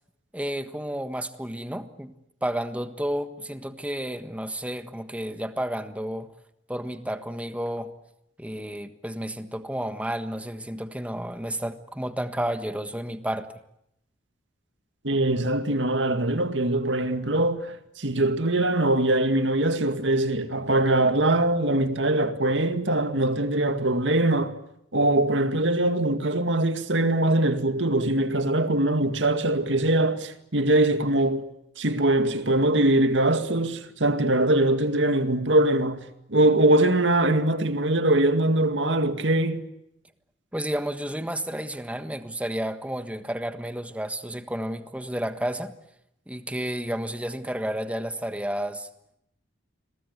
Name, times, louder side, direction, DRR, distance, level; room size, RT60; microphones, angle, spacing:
voice 1, 0.3-2.1 2.4-6.3 6.7-7.9 8.4-13.5 40.5-45.7 46.3-48.9, right 1 dB, 5° right, 1.4 m, -31 dB
voice 2, 15.0-24.5 24.9-31.5 31.8-36.0 36.3-39.6, right 1 dB, 75° right, 2.2 m, -22 dB
28.5 x 22.5 x 8.1 m
head